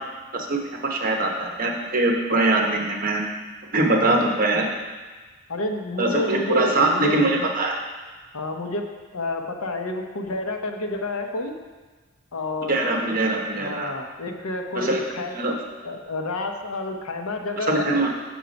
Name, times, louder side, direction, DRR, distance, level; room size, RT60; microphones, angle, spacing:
voice 1, 0.3-3.2 3.7-4.7 6.0-7.8 12.7-13.9 14.7-15.0 15.3-15.6 17.6-18.1, right 2 dB, 40° right, 1 dB, 1.0 m, -22 dB
voice 2, 3.9-4.3 5.5-7.5 8.3-11.5 12.3-12.8 13.6-15.4 15.8-18.0, left 2 dB, 85° left, 3 dB, 0.9 m, -29 dB
6.9 x 6.3 x 5.2 m, 1.3 s
head